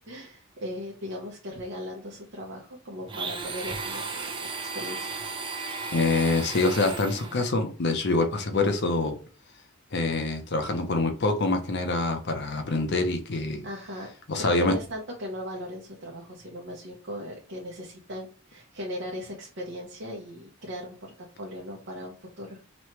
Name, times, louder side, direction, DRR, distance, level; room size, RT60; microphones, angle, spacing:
voice 1, 0.1-5.1 13.6-14.1 14.4-22.6, equal, 55° right, -3 dB, 0.8 m, -38 dB
Domestic sounds home sounds, 3.1-7.5, right 4 dB, 25° right, 0.5 m, -35 dB
voice 2, 5.9-9.2 9.9-13.7 14.3-14.7, left 3 dB, 50° left, 5 dB, 0.6 m, -25 dB
3.1 x 3.0 x 4.4 m, 0.36 s
head